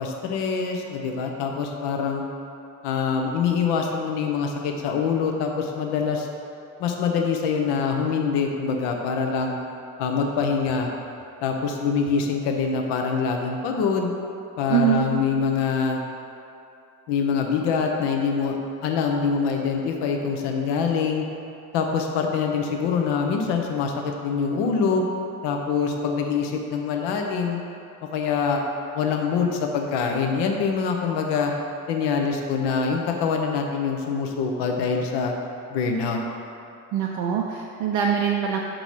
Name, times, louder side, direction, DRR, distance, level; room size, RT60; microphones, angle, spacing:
voice 1, 0.0-2.2 2.8-6.3 6.8-9.6 10.0-10.9 11.4-14.1 14.6-16.0 17.1-21.2 21.7-25.0 25.4-27.6 28.1-28.6 28.9-31.5 31.9-35.3 35.7-36.2, left 5 dB, 65° left, 2 dB, 0.8 m, -24 dB
voice 2, 14.7-15.1 36.9-38.6, right 9 dB, 60° right, -1 dB, 0.6 m, -23 dB
5.9 x 3.8 x 4.7 m, 2.7 s
figure-of-eight pair, 45°, 45 cm